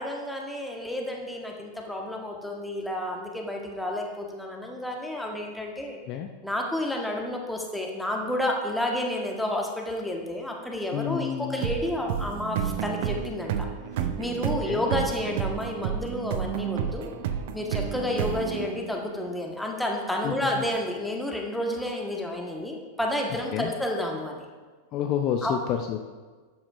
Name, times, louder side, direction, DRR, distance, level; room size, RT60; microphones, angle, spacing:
voice 1, 0.0-6.0 6.4-13.7 14.2-17.1 17.5-24.4 25.4-25.5, left 1 dB, 5° left, 0 dB, 1.4 m, -30 dB
voice 2, 10.9-11.7 14.7-14.8 20.2-20.6 23.5-23.7 24.9-26.0, left 9 dB, 40° left, 5 dB, 0.5 m, -29 dB
sound 1, 11.6-19.2, right 9 dB, 50° right, 0.6 m, -31 dB
12.0 x 8.6 x 2.6 m, 1.4 s
figure-of-eight pair, 90°, 0 cm